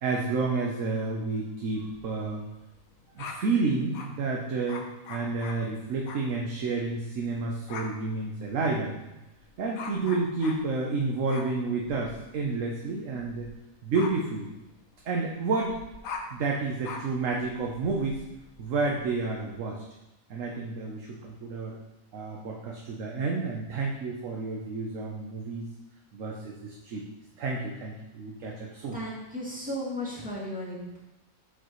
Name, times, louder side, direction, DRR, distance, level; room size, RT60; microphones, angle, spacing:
voice 1, 0.0-2.4 3.1-9.1 9.6-13.5 13.8-14.5 15.0-15.7 16.3-18.2 18.6-19.8 20.3-21.8 22.1-25.6 26.1-27.1 27.4-29.0, right 3 dB, 70° right, -1 dB, 1.2 m, -30 dB
sound 1, 1.8-4.2 4.7-6.3 6.6-6.9 7.2-19.6, left 4 dB, 90° left, 1.3 m, -44 dB
voice 2, 28.9-31.0, left 1 dB, 5° right, -7 dB, 2.3 m, -35 dB
8.1 x 7.2 x 3.1 m, 0.98 s
omnidirectional pair, 1.4 m